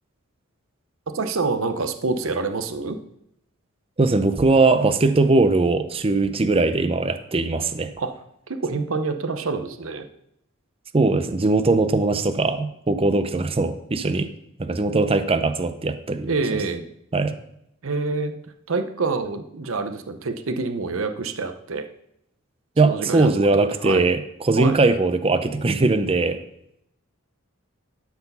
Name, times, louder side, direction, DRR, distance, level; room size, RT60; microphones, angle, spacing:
voice 1, 1.1-3.0 8.0-8.1 8.5-10.1 16.3-16.9 17.8-18.3 18.7-21.9 22.8-24.1 24.6-24.8, right 3 dB, 75° right, 8 dB, 0.8 m, -27 dB
voice 2, 4.0-7.9 10.9-14.3 14.6-16.3 17.1-17.4 22.8-26.4, right 3 dB, 25° right, 9 dB, 0.6 m, -20 dB
12.0 x 4.7 x 5.5 m, 0.78 s
head